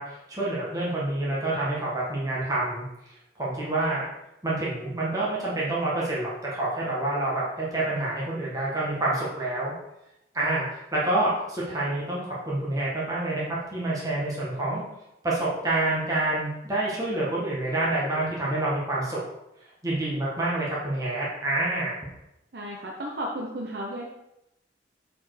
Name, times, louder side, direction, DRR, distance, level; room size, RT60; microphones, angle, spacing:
voice 1, 0.0-2.8 3.4-4.0 4.4-9.7 10.3-14.8 15.2-19.2 19.8-21.9, right 2 dB, 20° right, -6 dB, 1.5 m, -27 dB
voice 2, 22.5-24.1, equal, 60° right, -1 dB, 0.9 m, -33 dB
7.1 x 4.5 x 4.9 m, 0.88 s
head